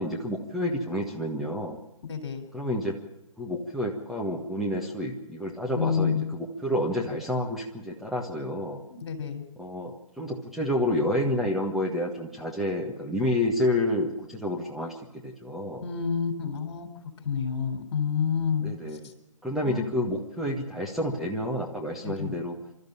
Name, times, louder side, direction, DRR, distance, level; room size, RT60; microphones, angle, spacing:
voice 1, 0.0-1.8 2.5-3.0 3.4-8.8 9.6-15.9 18.6-19.1 19.4-22.6, left 1 dB, ahead, -3 dB, 1.6 m, -29 dB
voice 2, 2.1-2.4 5.8-6.2 8.9-9.4 15.8-16.9 17.2-18.7 19.6-19.9 22.0-22.3, left 6 dB, 45° left, 8 dB, 4.0 m, -28 dB
26.5 x 13.5 x 8.7 m, 0.93 s
figure-of-eight pair, 140°, 18 cm